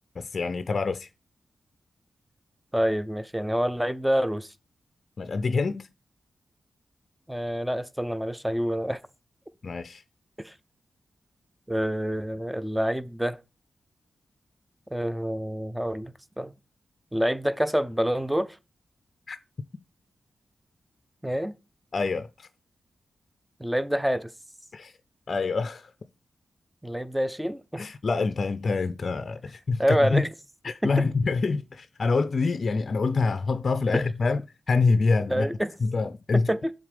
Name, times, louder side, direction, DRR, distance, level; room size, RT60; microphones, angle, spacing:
voice 1, 0.2-1.1 5.2-5.9 9.6-10.0 19.3-19.4 21.9-22.5 24.7-24.9 25.3-25.9 27.8-30.2 30.6-34.4 34.7-35.5 35.8-36.5, left 4 dB, 55° left, 0.4 m, -26 dB
voice 2, 2.7-4.5 7.3-9.0 10.4-10.5 11.7-13.4 14.9-16.5 17.1-18.6 21.2-21.5 23.6-24.3 26.8-27.9 29.8-30.3 30.8-30.9 33.9-34.0 35.3-35.7 36.3-36.7, equal, 5° right, 0.5 m, -27 dB
7.2 x 3.6 x 5.0 m
cardioid pair, 70°, 0 cm